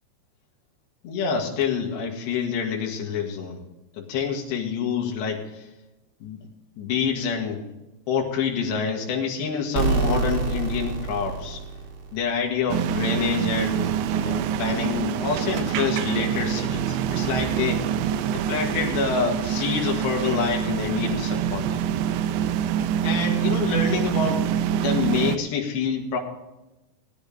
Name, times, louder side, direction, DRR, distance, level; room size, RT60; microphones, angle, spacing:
voice 1, 1.0-3.6 4.0-5.7 6.2-6.5 6.8-7.7 8.1-11.6 12.1-17.8 18.3-21.9 23.0-24.4 24.7-26.2, left 6 dB, 75° left, 1 dB, 4.0 m, -27 dB
sound 1, 9.8-12.5, right 4 dB, 60° right, 3.4 m, -26 dB
sound 2, 12.7-25.4, right 9 dB, 80° right, 2.6 m, -25 dB
18.0 x 10.5 x 3.6 m, 0.98 s
omnidirectional pair, 5.0 m